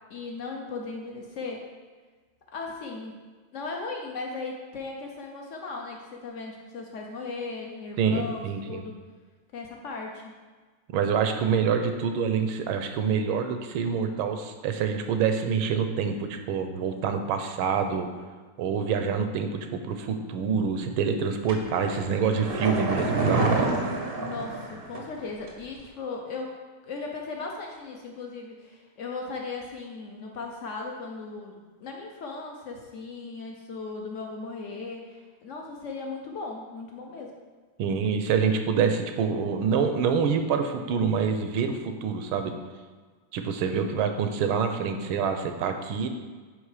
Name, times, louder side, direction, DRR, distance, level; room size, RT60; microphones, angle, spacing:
voice 1, 0.1-1.7 2.5-3.2 3.5-8.9 9.5-10.3 24.2-26.6 26.8-37.3, left 3 dB, 75° left, 1 dB, 0.6 m, -37 dB
voice 2, 8.0-8.8 10.9-18.1 18.6-23.5 37.8-42.5 43.3-46.1, right 6 dB, 85° right, 6 dB, 1.5 m, -26 dB
sound 1, 21.5-25.2 25.5-25.6, right 3 dB, 65° right, 0.5 m, -27 dB
9.4 x 3.2 x 4.9 m, 1.4 s
omnidirectional pair, 2.2 m